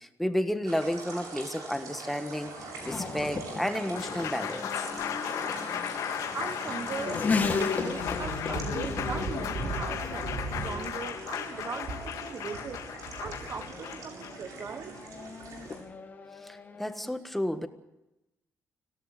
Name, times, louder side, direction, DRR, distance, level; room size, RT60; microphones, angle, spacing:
voice 1, 0.0-2.5 2.9-4.7 16.4-17.7, equal, 5° left, 1.5 m, -31 dB
sound 1, 0.6-15.8, right 4 dB, 85° right, 7.6 m, -41 dB
Race car auto racing / Accelerating revving vroom, 1.0-17.1, left 4 dB, 30° left, 2.3 m, -38 dB
Applause, 3.7-15.8, left 9 dB, 85° left, 2.4 m, -36 dB
voice 2, 6.3-7.3 7.6-10.3 10.6-12.8 13.2-15.0, right 6 dB, 45° right, 1.3 m, -39 dB
25.5 x 17.0 x 6.7 m
cardioid pair, 145°, 6 cm